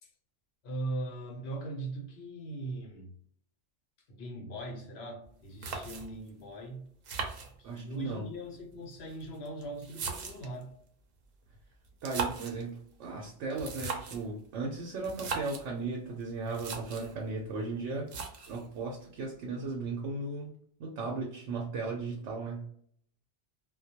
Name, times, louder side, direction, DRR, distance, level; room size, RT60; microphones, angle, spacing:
voice 1, 0.6-3.1 4.1-6.9 7.6-10.7, right 2 dB, 65° left, 0.9 m, -40 dB
sound 1, 5.2-5.3 5.6-6.3 7.0-8.0 8.9-10.6 11.9-12.6 13.5-14.3 15.0-15.7 16.2-16.3 16.5-17.1 18.1-18.7, right 5 dB, 60° right, 0.7 m, -38 dB
voice 2, 7.6-8.3 12.0-18.1 18.5-20.5 20.8-22.6, right 3 dB, 90° right, 0.9 m, -36 dB
2.2 x 2.1 x 2.7 m
omnidirectional pair, 1.2 m